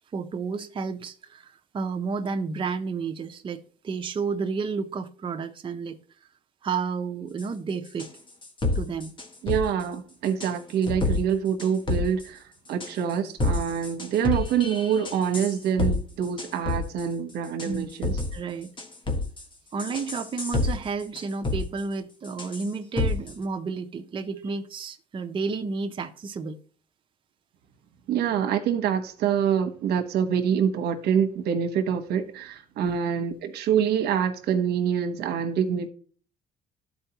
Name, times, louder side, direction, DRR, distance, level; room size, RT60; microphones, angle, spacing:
voice 1, 0.1-6.0 6.6-8.1 8.7-9.1 17.6-17.9 18.3-18.7 19.7-26.6 32.8-33.0, right 4 dB, 30° right, 0.6 m, -31 dB
sound 1, 7.4-7.5 8.0-8.1 8.4-9.6 10.2-10.5 10.8-11.2 11.6-12.2 12.8-13.1 13.4-16.0 16.2-17.0 17.6-18.3 18.8-19.4 19.8-20.7 21.0-21.6 22.2-22.7 23.0-23.3, left 2 dB, 30° left, 1.4 m, -28 dB
voice 2, 9.4-12.4 12.7-18.2 24.4-24.6 28.1-35.9, right 8 dB, 75° right, 1.0 m, -26 dB
13.0 x 4.4 x 2.9 m
cardioid pair, 110°, 17 cm